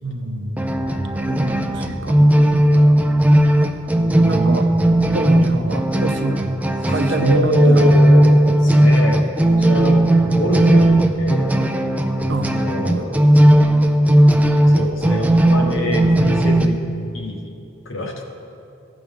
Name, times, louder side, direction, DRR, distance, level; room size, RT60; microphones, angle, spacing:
voice 1, 0.0-0.7 1.3-2.5 4.2-4.7 5.1-6.4 6.9-8.0 12.3-12.5 12.8-13.1, right 2 dB, 60° right, 7 dB, 0.7 m, -25 dB
sound 1, 0.6-16.7, right 1 dB, 10° right, 0.3 m, -16 dB
voice 2, 6.9-11.7 12.5-13.2 14.6-16.8 17.1-17.4 17.8-18.2, left 1 dB, 80° left, 1 dB, 1.3 m, -25 dB
15.0 x 5.9 x 3.6 m, 2.7 s
head